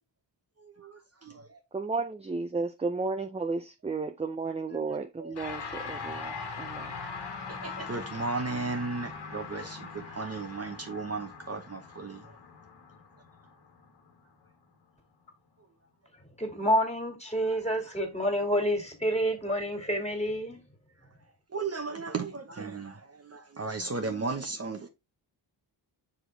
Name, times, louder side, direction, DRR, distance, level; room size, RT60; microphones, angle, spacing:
voice 1, 0.6-1.6 4.9-5.3 7.5-12.2 21.5-24.9, right 3 dB, 35° right, 1.0 m, -35 dB
voice 2, 1.7-7.0, right 3 dB, 15° right, 0.5 m, -33 dB
sound 1, 5.3-14.8, left 5 dB, 65° left, 1.6 m, -41 dB
voice 3, 16.4-20.6, equal, 15° left, 2.4 m, -28 dB
6.0 x 4.9 x 3.2 m
cardioid pair, 85°, 44 cm